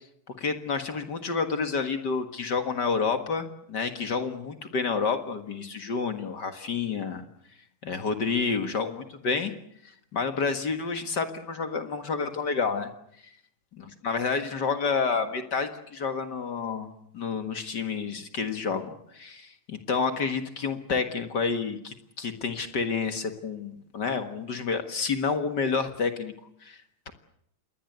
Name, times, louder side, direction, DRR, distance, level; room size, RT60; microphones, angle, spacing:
voice 1, 0.4-7.2 7.8-9.5 9.8-12.9 13.8-16.9 17.1-26.3 26.6-26.8, left 5 dB, 45° left, 8 dB, 1.6 m, -29 dB
27.5 x 21.5 x 8.1 m, 0.73 s
omnidirectional pair, 3.8 m